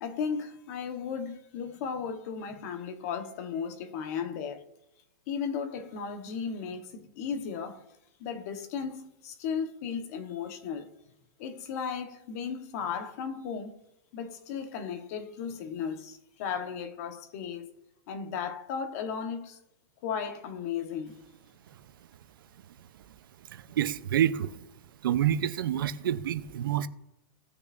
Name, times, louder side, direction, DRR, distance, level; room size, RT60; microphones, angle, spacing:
voice 1, 0.0-4.7 5.3-7.8 8.2-10.9 11.4-13.8 14.1-17.7 18.1-19.6 20.0-21.2, left 6 dB, 45° left, 1.2 m, -35 dB
voice 2, 23.5-24.6 25.0-26.9, right 10 dB, 80° right, 0.7 m, -28 dB
17.5 x 6.7 x 2.6 m
supercardioid pair, 160°, 11 cm